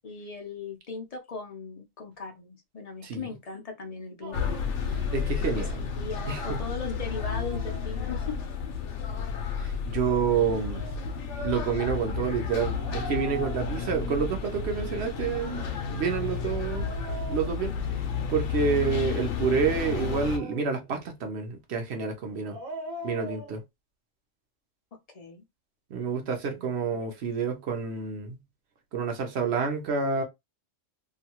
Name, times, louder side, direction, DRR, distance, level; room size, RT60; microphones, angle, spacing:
voice 1, 0.0-4.5 4.8-8.5 25.1-25.4 26.5-27.1, left 5 dB, 50° left, 0.4 m, -39 dB
Dog, 4.2-4.8 6.9-8.3 10.4-11.2 12.7-14.2 15.1-18.3 19.5-20.9 22.3-23.6, right 2 dB, 80° right, 1.2 m, -42 dB
sound 1, 4.3-20.4, left 6 dB, 70° left, 0.9 m, -32 dB
voice 2, 5.1-5.9 6.3-6.6 9.6-10.9 11.4-16.9 17.3-17.7 18.3-22.6 23.0-23.6 25.9-28.4 28.9-30.2, right 6 dB, 60° right, 1.0 m, -28 dB
2.8 x 2.3 x 2.9 m
omnidirectional pair, 1.3 m